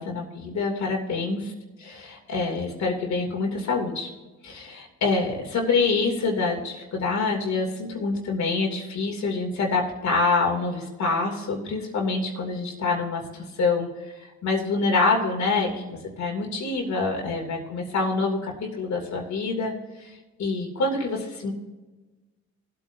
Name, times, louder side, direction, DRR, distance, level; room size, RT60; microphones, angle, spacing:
voice 1, 0.0-1.5 1.8-4.1 4.4-13.9 14.4-19.7 20.0-21.5, left 3 dB, 65° left, 0 dB, 2.8 m, -26 dB
18.5 x 8.4 x 2.7 m, 1.2 s
cardioid pair, 90°, 30 cm